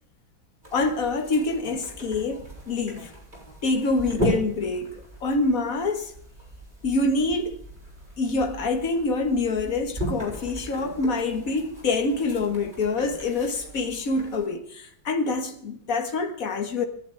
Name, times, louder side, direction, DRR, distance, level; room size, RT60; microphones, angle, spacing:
sound 1, 0.6-14.5, equal, 25° right, 7.7 m, -37 dB
voice 1, 0.7-3.1 3.6-6.1 6.8-7.6 8.2-16.8, left 3 dB, 45° left, 1.9 m, -26 dB
27.5 x 11.0 x 3.5 m
omnidirectional pair, 2.2 m